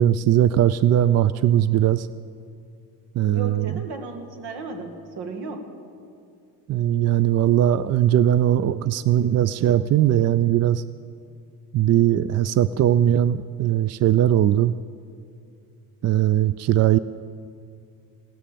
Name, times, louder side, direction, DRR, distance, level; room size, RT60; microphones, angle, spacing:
voice 1, 0.0-2.1 3.2-3.7 6.7-10.8 11.7-14.7 16.0-17.0, right 11 dB, 40° right, 16 dB, 0.4 m, -19 dB
voice 2, 3.3-5.7, right 3 dB, 70° right, 5 dB, 2.2 m, -34 dB
16.5 x 13.0 x 6.9 m, 2.4 s
supercardioid pair, 85°, 40 cm